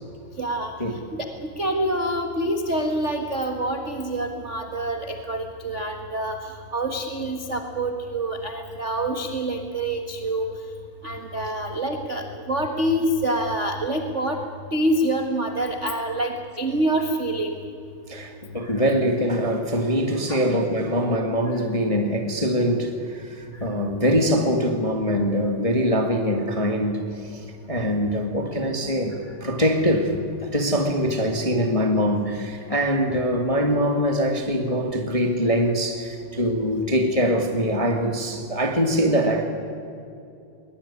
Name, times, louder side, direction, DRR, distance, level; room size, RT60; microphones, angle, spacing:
voice 1, 0.4-0.7 1.1-6.4 6.7-10.5 11.0-14.4 14.7-17.6 20.3-20.4 33.7-33.8, right 1 dB, 40° right, 4 dB, 1.0 m, -26 dB
voice 2, 18.1-30.1 30.4-39.4, equal, 15° left, 3 dB, 1.1 m, -23 dB
21.0 x 20.0 x 9.7 m, 2.6 s
omnidirectional pair, 3.7 m